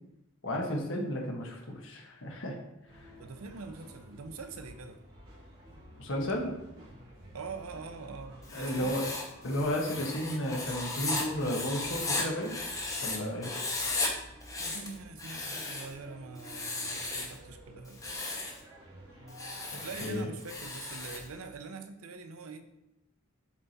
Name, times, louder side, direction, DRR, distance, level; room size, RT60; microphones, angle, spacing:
voice 1, 0.4-2.6 6.0-6.5 8.5-9.1 9.4-12.6 13.0-13.5 20.0-20.3, equal, 65° left, 0 dB, 1.3 m, -33 dB
sound 1, 2.9-21.4, equal, 45° right, 2.3 m, -52 dB
voice 2, 3.2-5.0 7.3-9.1 9.4-9.6 14.6-18.0 19.8-22.7, right 4 dB, 90° right, 8 dB, 0.6 m, -44 dB
Writing, 8.4-13.2 13.4-14.1 14.4-15.9 16.4-17.4 17.9-18.6 19.3-21.3, left 3 dB, 15° left, 0.8 m, -36 dB
7.2 x 3.5 x 4.1 m, 0.87 s
head